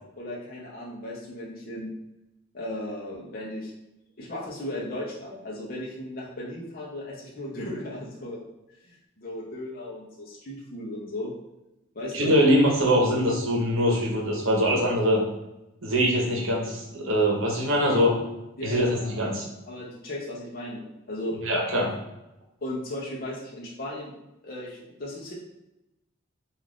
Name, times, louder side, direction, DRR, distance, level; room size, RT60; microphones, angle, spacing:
voice 1, 0.2-1.9 2.5-3.7 4.2-8.5 8.9-11.3 11.9-12.4 16.2-16.4 18.6-19.4 19.7-21.4 22.6-24.1 24.4-25.3, left 1 dB, 45° left, -4 dB, 0.5 m, -36 dB
voice 2, 12.1-15.2 15.8-18.2 18.6-19.4 21.5-22.0, equal, 75° right, -2 dB, 0.8 m, -23 dB
2.4 x 2.4 x 3.4 m, 0.93 s
head